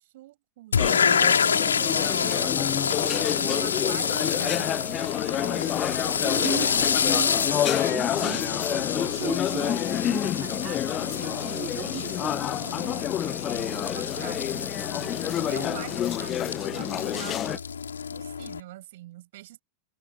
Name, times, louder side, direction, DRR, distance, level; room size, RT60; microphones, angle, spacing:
voice 1, 0.0-1.8 3.3-4.9 12.6-14.7 15.3-17.6 18.1-19.6, right 16 dB, 55° right, 7.9 m, -44 dB
sound 1, 0.7-18.6, left 6 dB, 70° left, 5.2 m, -28 dB
sound 2, 0.8-17.6, left 11 dB, 30° left, 0.8 m, -29 dB
voice 2, 6.2-12.4, right 13 dB, 30° right, 3.9 m, -38 dB
figure-of-eight pair, 90°, 0 cm